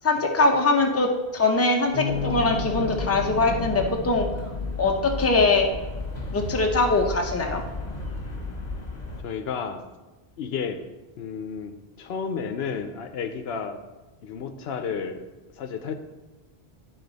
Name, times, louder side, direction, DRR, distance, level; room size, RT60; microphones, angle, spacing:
voice 1, 0.0-4.3 4.8-5.7 6.3-7.6, left 3 dB, 15° left, 2 dB, 0.6 m, -22 dB
Bass guitar, 1.9-4.9, left 4 dB, 65° right, 2.1 m, -35 dB
sound 1, 2.1-9.2, left 3 dB, 40° left, 1.3 m, -33 dB
voice 2, 9.2-9.8 10.4-10.9 11.2-13.8 14.2-15.3 15.6-15.9, left 6 dB, 75° left, 8 dB, 0.8 m, -32 dB
11.0 x 4.0 x 4.0 m, 1.1 s
omnidirectional pair, 1.1 m